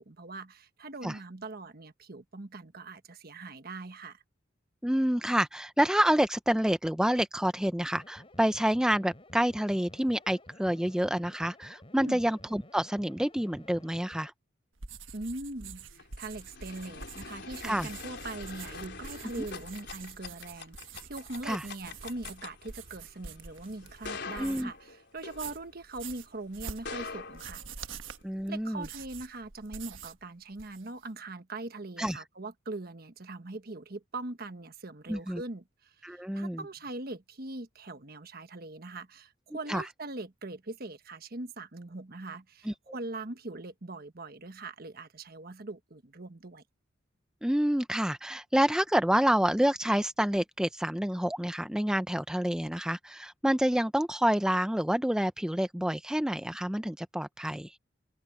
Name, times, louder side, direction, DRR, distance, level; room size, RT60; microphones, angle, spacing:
voice 1, 0.0-4.2 12.0-12.2 15.1-27.6 28.5-46.6, right 2 dB, 50° right, 1.3 m, -41 dB
voice 2, 4.8-14.3 17.6-17.9 21.4-21.6 24.4-24.7 28.2-28.9 32.0-32.2 35.1-35.4 36.0-36.6 39.7-39.8 42.7-42.8 47.4-57.8, equal, 5° right, 0.5 m, -28 dB
sound 1, 7.9-14.3, left 1 dB, 30° left, 3.2 m, -53 dB
sound 2, 14.8-24.8 25.2-30.2 30.5-31.1, right 6 dB, 80° right, 1.2 m, -46 dB
sound 3, 15.7-26.1 26.7-28.2, left 4 dB, 60° left, 4.4 m, -45 dB
open air
head